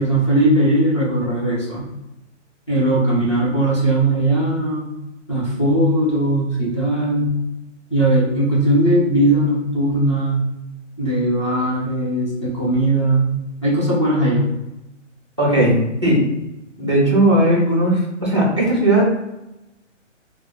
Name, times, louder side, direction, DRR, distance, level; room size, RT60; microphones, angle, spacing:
voice 1, 0.0-1.9 2.7-4.9 5.3-7.3 7.9-10.4 11.0-13.3 13.6-14.4, right 1 dB, 25° left, -8 dB, 0.6 m, -18 dB
voice 2, 15.4-16.2 16.8-19.0, right 1 dB, 25° right, -5 dB, 0.4 m, -17 dB
2.2 x 2.1 x 3.5 m, 0.96 s
hypercardioid pair, 170°, 38 cm